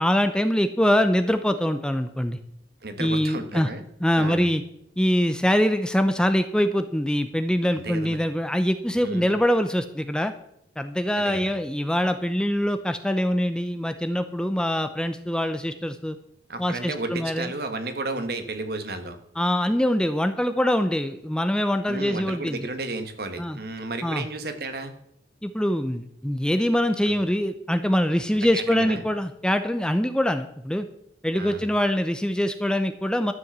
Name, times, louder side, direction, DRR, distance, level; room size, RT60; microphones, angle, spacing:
voice 1, 0.0-2.4 3.0-3.7 4.0-4.6 5.0-10.3 10.8-16.2 16.6-17.5 19.4-22.6 23.4-23.6 24.0-24.2 25.4-30.9 31.2-33.3, equal, 5° left, 8 dB, 0.6 m, -24 dB
voice 2, 2.8-3.8 4.1-4.5 7.7-8.2 9.0-9.3 11.2-11.4 16.5-19.2 21.9-24.9 27.0-27.1 28.5-29.0 31.4-31.7, right 2 dB, 60° right, 8 dB, 1.6 m, -33 dB
12.5 x 7.7 x 7.3 m, 0.75 s
head